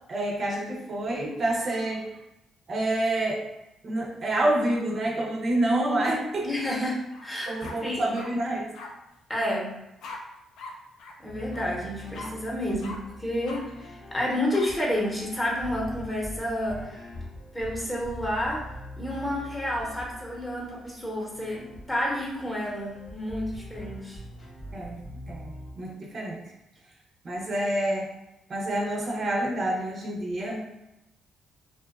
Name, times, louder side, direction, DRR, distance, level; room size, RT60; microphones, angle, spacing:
voice 1, 0.1-2.1 2.7-3.4 3.8-6.5 7.5-8.7 24.7-25.0 25.3-26.4 27.2-28.1 28.5-30.6, right 1 dB, 45° right, -2 dB, 0.5 m, -27 dB
voice 2, 6.4-7.5 7.8-8.2 9.3-9.7 11.2-17.0 17.5-18.6 19.0-24.2 30.4-30.6, left 1 dB, 15° left, -4 dB, 0.7 m, -30 dB
sound 1, 7.1-7.3 7.6-8.3 8.7-8.9 10.0-10.2 10.6-10.7 11.0-11.1 11.5-11.7 12.1-12.3 12.8-13.0 13.4-13.6 14.5-14.7, left 3 dB, 80° left, 0.4 m, -41 dB
sound 2, 11.3-25.7, equal, 50° left, 0.8 m, -43 dB
2.5 x 2.2 x 2.3 m, 0.90 s
cardioid pair, 90°, 0 cm